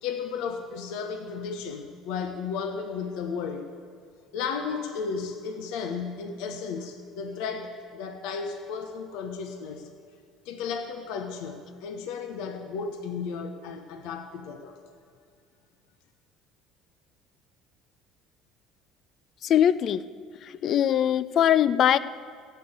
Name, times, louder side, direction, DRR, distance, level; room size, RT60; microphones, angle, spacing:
voice 1, 0.0-3.7 4.3-9.9 10.4-14.8, left 5 dB, 75° left, 6 dB, 1.0 m, -34 dB
voice 2, 19.4-20.0 20.4-22.0, left 10 dB, 55° left, 16 dB, 0.5 m, -22 dB
16.0 x 6.9 x 8.0 m, 2.1 s
supercardioid pair, 75°, 0 cm